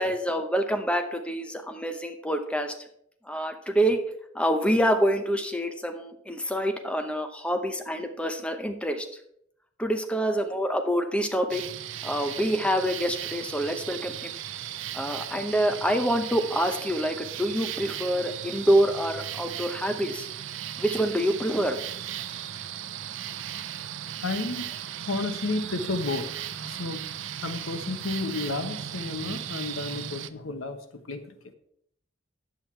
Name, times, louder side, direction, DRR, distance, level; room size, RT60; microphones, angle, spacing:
voice 1, 0.0-2.7 3.3-4.0 4.3-9.0 9.8-11.6 12.0-14.3 14.9-20.3 20.8-21.8, equal, 5° left, 6 dB, 0.8 m, -26 dB
sound 1, 11.5-30.3, right 10 dB, 65° right, 0.5 m, -37 dB
voice 2, 24.2-24.7 25.0-26.3 26.6-27.1 27.4-31.5, left 3 dB, 85° left, 8 dB, 1.1 m, -32 dB
10.0 x 8.1 x 4.5 m, 0.71 s
head